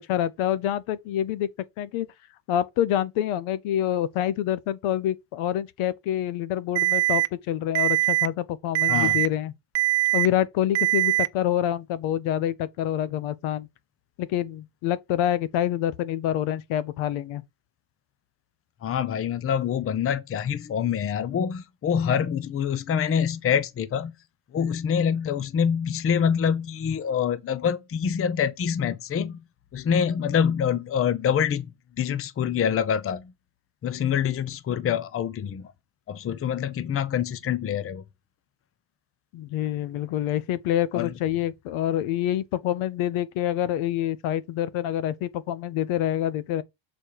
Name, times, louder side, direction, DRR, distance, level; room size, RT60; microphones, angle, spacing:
voice 1, 0.0-1.5 1.8-2.1 2.5-9.5 10.1-13.7 14.2-17.4 39.3-46.6, left 11 dB, 75° left, 1.0 m, -27 dB
Alarm, 6.8-7.3 7.8-8.3 8.8-9.3 9.8-10.3 10.8-11.3, right 18 dB, 60° right, 0.7 m, -22 dB
voice 2, 18.8-24.1 24.5-29.4 29.7-33.3 33.8-35.7 36.1-38.0 40.9-41.1, left 8 dB, 30° left, 0.7 m, -26 dB
6.8 x 4.2 x 4.7 m
cardioid pair, 125°, 49 cm